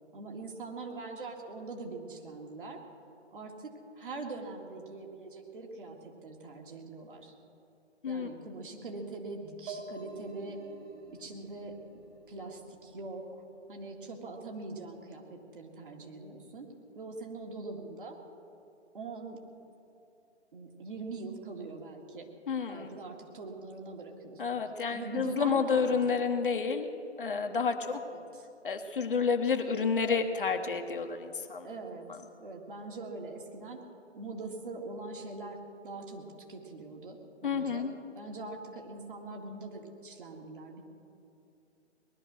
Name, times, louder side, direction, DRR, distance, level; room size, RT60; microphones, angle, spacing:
voice 1, 0.1-2.8 3.3-7.3 8.1-10.6 11.1-16.7 16.9-18.2 18.9-19.4 20.5-22.3 22.7-24.6 24.9-26.2 28.1-28.5 31.6-32.1 32.4-33.8 34.1-35.6 35.8-37.8 38.1-40.8, right 3 dB, 50° right, 1 dB, 2.2 m, -43 dB
sound 1, 9.7-13.3, right 3 dB, 20° right, 1.3 m, -48 dB
voice 2, 22.5-22.9 24.4-26.9 27.2-28.0 28.6-31.7 32.1-32.2 37.4-37.9, left 5 dB, 50° left, 5 dB, 1.1 m, -30 dB
19.5 x 11.5 x 6.3 m, 2.7 s
figure-of-eight pair, 140°, 35 cm